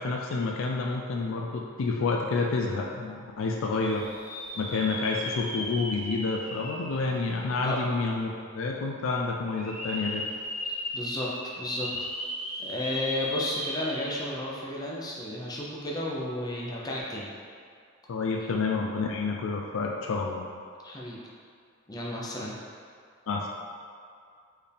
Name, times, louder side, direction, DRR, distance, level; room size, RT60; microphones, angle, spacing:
voice 1, 0.0-4.1 4.6-10.3 18.1-20.5 23.3-23.5, left 3 dB, 65° left, 0 dB, 0.4 m, -29 dB
sound 1, 3.8-7.8 8.3-8.4 9.5-14.4 14.8-14.9 16.8-17.0, left 1 dB, 5° right, 1.3 m, -37 dB
voice 2, 10.9-11.9 12.2-12.3 12.6-17.3 18.4-18.6 20.8-21.2 21.9-22.5, left 1 dB, 20° left, -4 dB, 0.6 m, -33 dB
4.5 x 3.4 x 3.4 m, 2.2 s
head